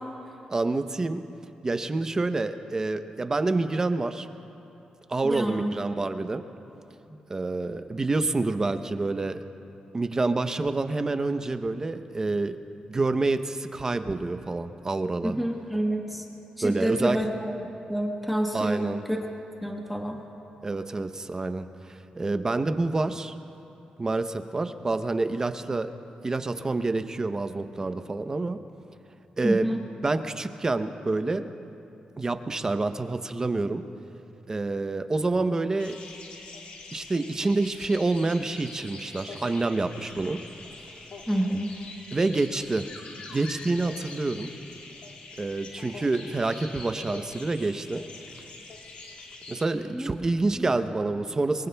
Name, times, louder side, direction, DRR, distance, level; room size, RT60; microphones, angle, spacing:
voice 1, 0.5-1.2 1.6-4.3 5.1-6.4 7.3-9.4 9.9-12.6 12.9-15.4 16.6-17.2 18.5-19.0 20.6-23.3 24.0-25.9 26.2-28.6 29.4-29.8 30.0-31.5 32.2-33.8 34.5-36.0 36.9-40.4 42.1-42.9 43.3-44.5 45.4-48.0 49.5-51.7, right 3 dB, 25° right, 9 dB, 0.7 m, -27 dB
voice 2, 5.2-5.7 15.2-16.3 16.6-17.5 17.9-19.2 19.6-20.2 29.4-29.8 41.3-41.7 49.9-50.1 50.6-50.7, right 1 dB, ahead, 0 dB, 1.2 m, -28 dB
sound 1, 35.8-49.7, left 3 dB, 85° left, 2.1 m, -44 dB
23.5 x 23.5 x 2.3 m, 2.9 s
cardioid pair, 110°, 2 cm